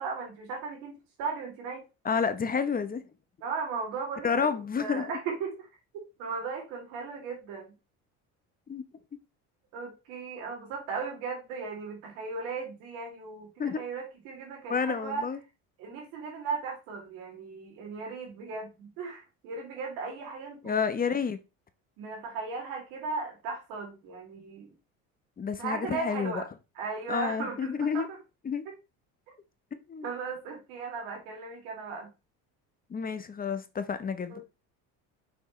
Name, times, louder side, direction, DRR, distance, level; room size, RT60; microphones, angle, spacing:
voice 1, 0.0-1.8 3.4-4.5 4.8-5.7 6.2-7.7 9.7-15.3 15.8-20.9 22.0-24.7 25.6-26.5 26.8-28.2 28.6-28.7 30.0-32.1 34.3-34.4, right 4 dB, 80° right, 3.2 m, -37 dB
voice 2, 2.0-3.0 4.2-5.1 8.7-8.8 13.6-13.8 14.7-15.4 20.6-21.4 25.4-26.4 27.1-28.1 28.4-28.6 29.9-30.1 32.9-34.3, left 6 dB, 25° left, 0.9 m, -29 dB
6.1 x 6.0 x 3.2 m
supercardioid pair, 105°, 33 cm